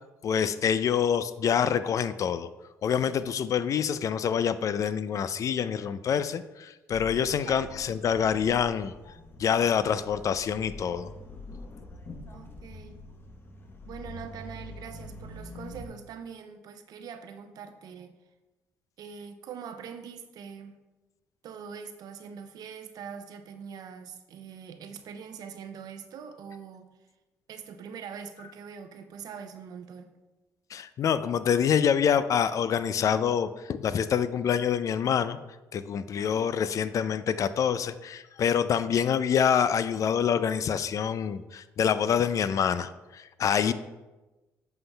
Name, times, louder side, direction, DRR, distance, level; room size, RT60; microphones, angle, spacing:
voice 1, 0.2-2.5 2.8-11.1 30.7-35.4 35.7-43.7, left 8 dB, 50° left, 14 dB, 0.3 m, -26 dB
sound 1, 6.9-15.9, left 2 dB, 35° left, 0.9 m, -45 dB
voice 2, 12.3-13.0 13.9-18.1 19.0-20.8 21.4-26.9 27.5-30.1 36.1-36.5 43.6-43.7, right 7 dB, 65° right, 8 dB, 0.6 m, -43 dB
7.8 x 5.6 x 2.3 m, 1.1 s
supercardioid pair, 65°, 7 cm